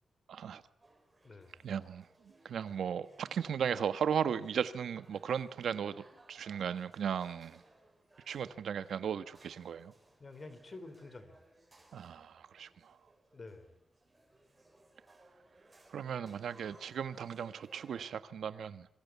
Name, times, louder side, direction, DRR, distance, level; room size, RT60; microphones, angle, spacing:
voice 1, 0.3-0.6 1.6-2.1 2.4-7.6 8.3-9.9 11.9-13.0 15.9-18.9, right 8 dB, 75° right, 1.3 m, -36 dB
sound 1, 0.8-18.0, right 2 dB, 15° right, 5.4 m, -63 dB
voice 2, 1.2-1.6 10.2-11.4 13.3-13.8, left 3 dB, 30° left, 3.5 m, -49 dB
sound 2, 2.3-2.7 3.3-3.6 3.9-4.0 4.6-5.3 5.9-6.7 7.1-7.7, right 6 dB, 50° right, 5.5 m, -70 dB
26.5 x 24.5 x 8.3 m
wide cardioid pair, 180°, 0 cm